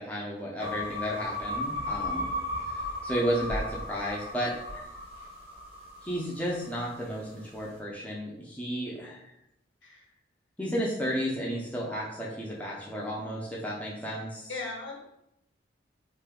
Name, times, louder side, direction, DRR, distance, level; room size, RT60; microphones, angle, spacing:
voice 1, 0.0-2.3 2.6-4.8 6.0-9.2 10.6-14.5, equal, 5° left, -5 dB, 0.4 m, -33 dB
sound 1, 0.6-7.0, left 1 dB, 30° right, 0.7 m, -35 dB
voice 2, 14.5-15.0, left 3 dB, 70° left, 0 dB, 0.6 m, -37 dB
2.6 x 2.2 x 3.5 m, 0.81 s
head